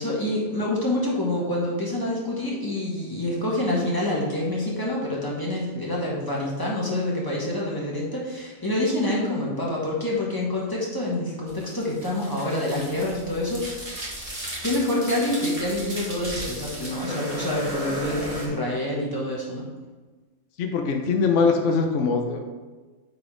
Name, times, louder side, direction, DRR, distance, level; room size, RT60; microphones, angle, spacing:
voice 1, 0.0-14.0 14.6-19.6, left 1 dB, 15° left, -5 dB, 1.5 m, -27 dB
sound 1, 11.5-18.5, right 1 dB, 25° right, 1.4 m, -35 dB
voice 2, 20.6-22.4, left 4 dB, 60° left, 3 dB, 1.0 m, -22 dB
8.8 x 4.0 x 3.8 m, 1.3 s
omnidirectional pair, 1.5 m